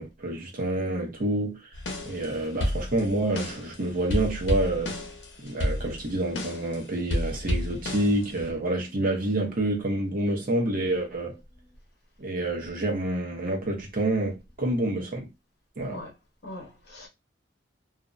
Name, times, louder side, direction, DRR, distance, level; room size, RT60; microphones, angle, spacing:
voice 1, 0.0-1.6 2.0-4.9 5.4-11.4 12.2-15.3 15.8-16.0, right 1 dB, 50° right, 0.7 m, -28 dB
sound 1, 1.7-2.3 2.6-3.7 4.1-6.7 7.1-8.5, equal, 90° left, 0.7 m, -30 dB
voice 2, 15.8-16.1 16.4-17.1, left 1 dB, 65° left, 0.9 m, -41 dB
2.5 x 2.1 x 2.5 m
head